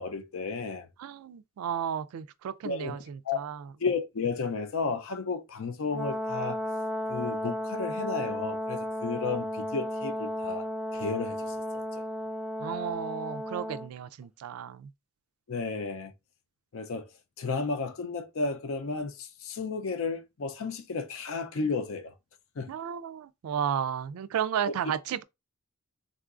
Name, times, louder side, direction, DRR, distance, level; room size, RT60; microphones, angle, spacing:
voice 1, 0.0-0.9 2.6-3.0 3.2-3.4 3.8-6.6 7.1-10.7 10.9-11.6 11.9-12.0 15.5-16.1 16.7-17.1 17.4-22.1 22.6-22.7, left 4 dB, 70° left, 0.5 m, -33 dB
voice 2, 1.0-3.6 12.6-14.9 22.7-25.2, right 8 dB, 85° right, 0.3 m, -33 dB
Brass instrument, 5.9-13.9, equal, 5° right, 0.3 m, -34 dB
3.7 x 2.4 x 2.4 m
head